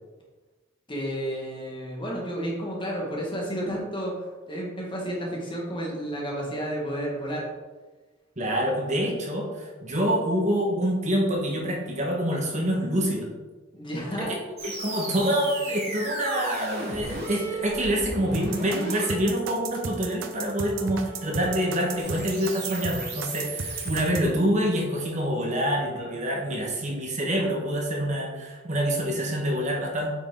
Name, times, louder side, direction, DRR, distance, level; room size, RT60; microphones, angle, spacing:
voice 1, 0.9-7.5 13.7-14.3, equal, 25° left, -2 dB, 1.7 m, -31 dB
voice 2, 8.4-13.3 14.2-14.3 14.6-30.1, equal, 35° right, -2 dB, 1.4 m, -26 dB
sound 1, 14.6-24.0, right 2 dB, 50° right, 2.4 m, -36 dB
sound 2, 18.3-24.3, right 5 dB, 65° right, 0.7 m, -34 dB
8.3 x 5.4 x 3.8 m, 1.3 s
head